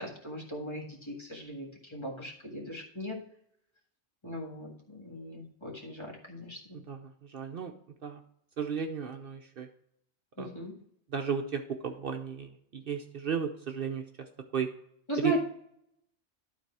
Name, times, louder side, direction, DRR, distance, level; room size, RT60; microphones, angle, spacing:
voice 1, 0.0-3.2 4.2-6.6 10.4-10.7 15.1-15.4, right 1 dB, 25° left, -2 dB, 1.8 m, -37 dB
voice 2, 6.7-7.7 8.0-8.2 8.6-9.7 10.4-10.5 11.1-14.7 15.2-15.4, right 7 dB, 55° right, 4 dB, 0.8 m, -34 dB
12.0 x 4.1 x 4.7 m, 0.71 s
omnidirectional pair, 1.2 m